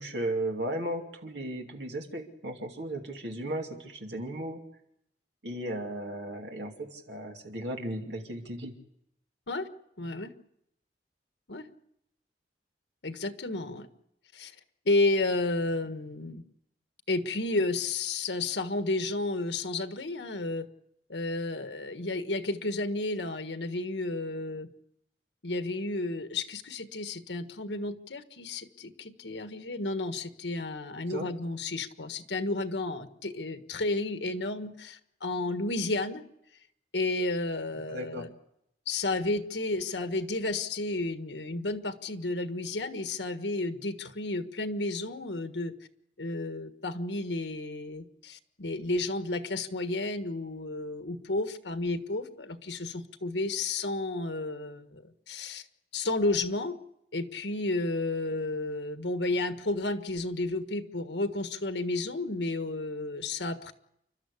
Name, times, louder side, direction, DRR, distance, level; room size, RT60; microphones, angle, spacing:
voice 1, 0.0-4.6 5.4-8.7 31.1-31.3 37.9-38.2, right 1 dB, 80° right, 2 dB, 2.6 m, -35 dB
voice 2, 10.0-10.3 11.5-11.7 13.0-13.9 14.3-14.5 14.8-16.4 17.1-20.7 21.1-24.7 25.4-36.2 36.9-38.3 38.9-45.7 46.2-55.6 55.9-56.7 57.1-63.7, left 2 dB, 90° left, 9 dB, 1.5 m, -32 dB
29.0 x 12.5 x 8.4 m, 0.79 s
head